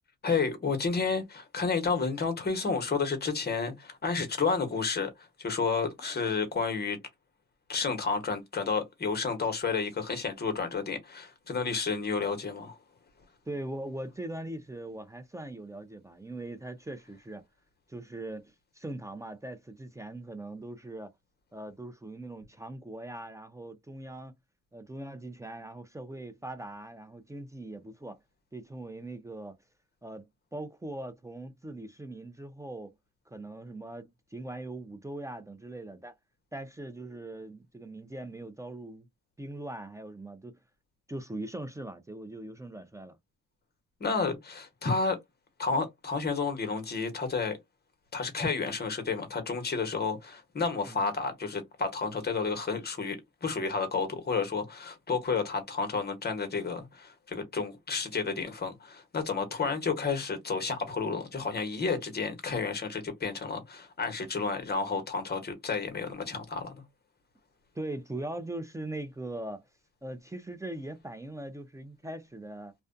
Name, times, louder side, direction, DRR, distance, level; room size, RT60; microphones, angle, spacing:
voice 1, 0.2-5.1 5.4-7.0 7.7-12.8 44.0-45.2 45.6-47.6 48.1-66.8, left 4 dB, 35° left, 1.0 m, -31 dB
voice 2, 13.5-17.4 17.9-21.1 21.5-24.3 24.7-28.2 28.5-29.6 30.0-32.9 33.3-36.1 36.5-39.1 39.4-40.6 41.1-43.2 50.8-51.1 67.7-69.6 70.0-72.7, right 1 dB, 10° right, 0.4 m, -41 dB
2.4 x 2.2 x 2.5 m
cardioid pair, 90°, 30 cm